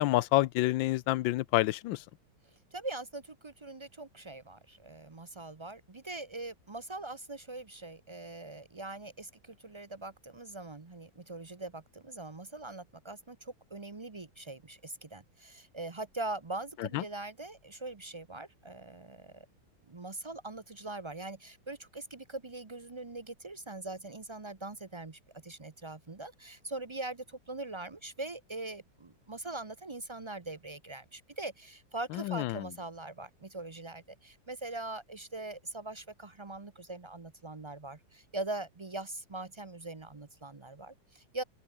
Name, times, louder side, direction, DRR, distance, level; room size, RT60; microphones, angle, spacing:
voice 1, 0.0-2.0 16.8-17.0 32.1-32.7, left 16 dB, 90° left, 1.4 m, -28 dB
voice 2, 2.7-19.5 19.9-41.4, right 2 dB, 30° right, 0.5 m, -42 dB
open air
omnidirectional pair, 2.0 m